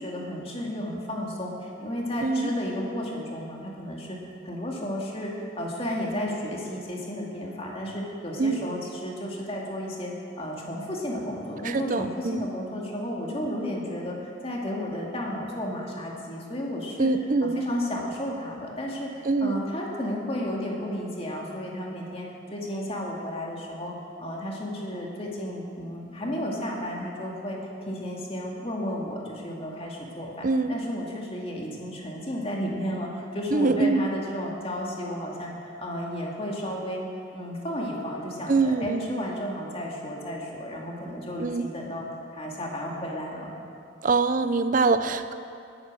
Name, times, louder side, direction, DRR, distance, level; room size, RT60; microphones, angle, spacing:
voice 1, 0.0-4.2 4.4-17.1 17.4-27.6 27.9-37.0 37.3-42.1 42.3-43.5, equal, 30° left, -2 dB, 2.2 m, -33 dB
voice 2, 2.2-2.5 8.4-8.6 11.6-12.5 17.0-17.6 19.3-19.6 30.4-30.7 33.5-34.1 38.5-39.1 41.4-41.7 44.0-45.3, right 3 dB, 40° right, 11 dB, 0.5 m, -24 dB
19.5 x 8.9 x 6.2 m, 2.6 s
head